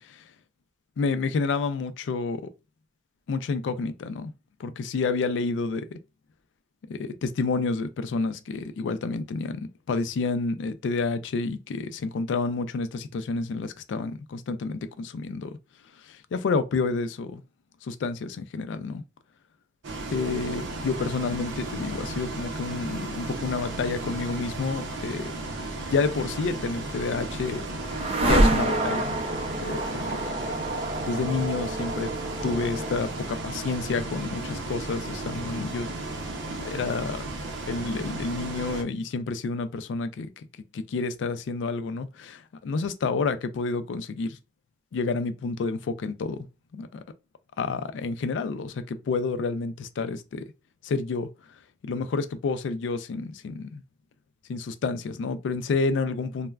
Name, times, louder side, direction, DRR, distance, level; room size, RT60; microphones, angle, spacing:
voice 1, 1.0-2.4 3.3-4.3 4.6-6.0 6.9-15.5 16.3-17.4 17.8-19.0 20.1-25.3 25.9-27.6 28.2-29.0 29.6-30.2 31.0-32.1 32.4-35.9 36.5-37.2 37.7-40.3 40.7-44.4 44.9-46.5 46.7-47.0 47.6-50.4 50.8-51.3 51.8-53.8 54.5-56.5, left 4 dB, 85° left, 0.3 m, -29 dB
Bus, 19.8-38.8, right 2 dB, 85° right, 0.5 m, -35 dB
sound 1, 26.7-36.8, right 1 dB, 30° right, 0.4 m, -29 dB
3.2 x 2.0 x 2.3 m
head